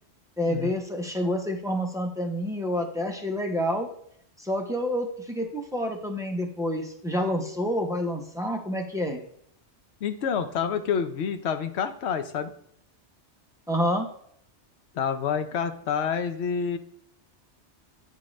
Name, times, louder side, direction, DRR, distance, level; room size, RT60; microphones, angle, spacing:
voice 1, 0.4-3.9 4.4-9.2 13.7-14.1, equal, 5° right, 1 dB, 0.6 m, -28 dB
voice 2, 10.0-12.5 14.9-16.8, left 7 dB, 75° left, 9 dB, 0.9 m, -28 dB
9.4 x 3.7 x 3.1 m, 0.68 s
omnidirectional pair, 1.2 m